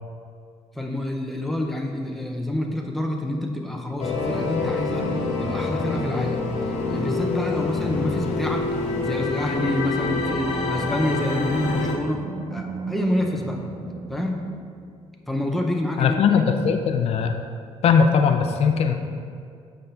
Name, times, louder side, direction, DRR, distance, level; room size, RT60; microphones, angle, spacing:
voice 1, 0.7-5.1 5.4-6.4 6.9-8.7 9.0-12.2 12.5-13.6 14.1-14.4 15.3-16.4, left 1 dB, ahead, 1 dB, 0.6 m, -27 dB
sound 1, 4.0-12.0, left 3 dB, 80° left, 1.2 m, -26 dB
Animal, 11.2-15.3, right 3 dB, 45° right, 0.9 m, -36 dB
voice 2, 16.0-17.4 17.8-19.0, left 6 dB, 60° left, 6 dB, 0.5 m, -19 dB
7.6 x 5.6 x 3.9 m, 2.2 s
cardioid pair, 155°, 12 cm